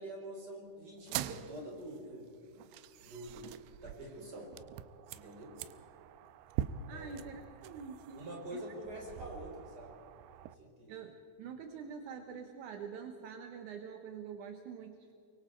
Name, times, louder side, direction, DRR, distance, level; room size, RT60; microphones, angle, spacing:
voice 1, 0.0-2.3 3.0-4.5 5.1-5.6 6.9-7.2 8.1-10.0 10.4-11.0, right 1 dB, 25° right, 0 dB, 4.6 m, -46 dB
sound 1, 1.0-10.6, right 11 dB, 85° right, 2.7 m, -44 dB
voice 2, 6.9-8.6 10.9-15.1, right 6 dB, 70° right, 6 dB, 2.0 m, -46 dB
25.0 x 23.5 x 4.4 m, 2.6 s
omnidirectional pair, 4.6 m